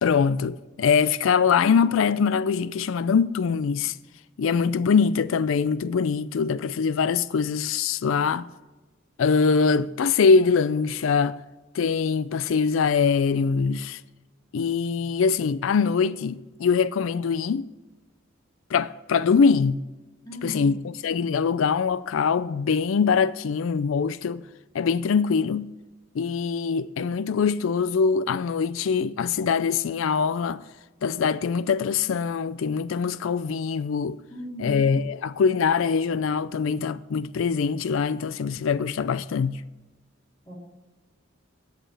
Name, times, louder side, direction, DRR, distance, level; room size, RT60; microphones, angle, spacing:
voice 1, 0.0-3.9 4.4-8.5 9.2-11.4 11.7-14.0 14.5-17.7 18.7-19.8 20.4-24.4 24.7-25.7 26.1-30.6 31.0-34.2 34.6-39.6, left 5 dB, 75° left, 0.4 m, -23 dB
voice 2, 20.2-20.7 34.3-34.8 40.5-40.6, left 1 dB, 20° left, 3.2 m, -36 dB
17.5 x 6.7 x 3.3 m
head